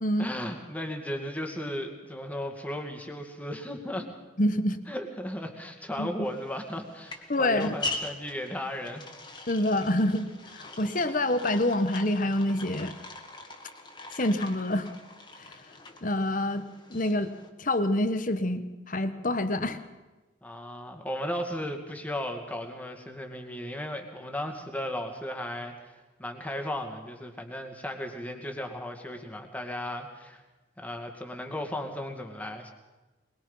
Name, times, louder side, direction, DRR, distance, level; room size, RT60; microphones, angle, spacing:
voice 1, 0.2-4.1 4.9-9.1 20.4-30.4 30.8-32.7, left 1 dB, 10° left, 3 dB, 2.2 m, -35 dB
voice 2, 4.4-4.8 6.0-6.1 7.3-7.7 9.5-10.3 10.5-12.9 14.1-14.9 15.4-15.5 16.0-17.3 17.6-19.8, left 1 dB, 45° left, 10 dB, 1.2 m, -27 dB
sound 1, 6.2-17.5, left 2 dB, 25° left, 1.9 m, -42 dB
22.0 x 21.5 x 5.6 m, 1.2 s
head